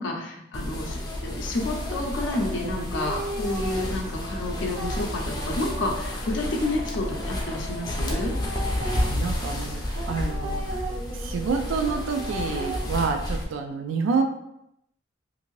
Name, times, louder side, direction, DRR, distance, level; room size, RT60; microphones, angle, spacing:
voice 1, 0.0-8.3, left 2 dB, 75° left, 0 dB, 0.5 m, -30 dB
sound 1, 0.5-13.4, left 1 dB, 20° left, 0.4 m, -31 dB
sound 2, 0.9-9.0 9.9-12.8, right 1 dB, 65° right, 0.7 m, -38 dB
voice 2, 8.8-10.8 11.1-14.2, right 5 dB, 85° right, 5 dB, 0.3 m, -28 dB
2.6 x 2.6 x 3.0 m, 0.81 s
head